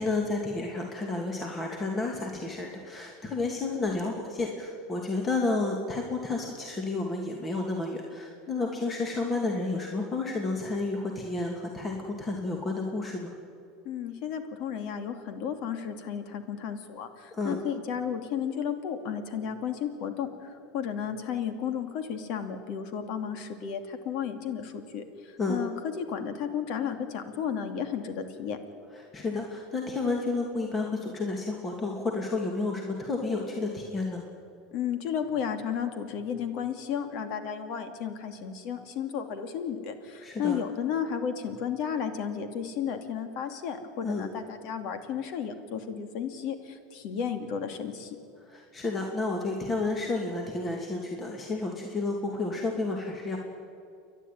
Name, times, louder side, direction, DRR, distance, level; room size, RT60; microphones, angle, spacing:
voice 1, 0.0-13.3 17.3-17.6 25.4-25.6 28.9-34.2 40.2-40.6 44.0-44.3 48.4-53.4, left 3 dB, 25° left, 1 dB, 2.7 m, -31 dB
voice 2, 13.8-28.6 34.7-48.2, left 8 dB, 60° left, 8 dB, 2.5 m, -33 dB
29.5 x 11.5 x 9.4 m, 2.4 s
supercardioid pair, 105°, 0 cm